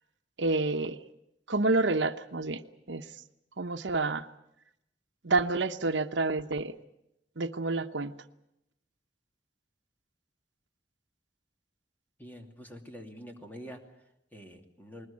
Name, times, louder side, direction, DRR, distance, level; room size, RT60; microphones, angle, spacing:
voice 1, 0.4-1.0 1.5-2.6 2.9-3.1 3.6-4.3 5.2-6.7 7.4-8.1, right 3 dB, 80° right, 9 dB, 1.0 m, -28 dB
voice 2, 12.2-15.1, equal, 10° left, 3 dB, 2.7 m, -47 dB
20.5 x 20.0 x 8.6 m, 0.82 s
head